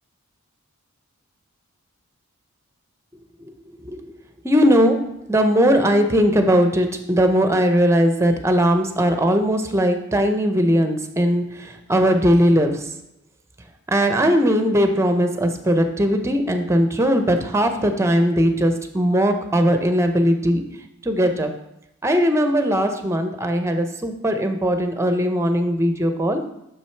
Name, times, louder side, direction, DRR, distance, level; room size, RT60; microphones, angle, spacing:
voice 1, 3.8-4.2 4.4-13.0 13.9-20.7 21.0-21.5 22.0-26.4, equal, 10° right, 6 dB, 0.6 m, -19 dB
6.2 x 6.1 x 4.4 m, 0.82 s
head